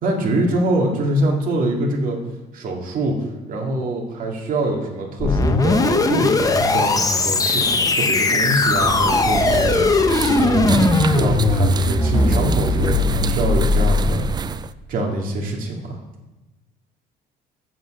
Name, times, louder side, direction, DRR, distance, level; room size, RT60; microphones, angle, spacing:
voice 1, 0.0-10.1 10.4-10.9 11.1-14.2 14.9-16.0, right 1 dB, 55° right, 0 dB, 2.2 m, -24 dB
sound 1, 5.2-14.4, left 3 dB, 20° left, 0.9 m, -19 dB
sound 2, 8.7-14.7, right 6 dB, 25° right, 0.3 m, -25 dB
7.9 x 7.5 x 6.4 m, 1.1 s
cardioid pair, 110°, 17 cm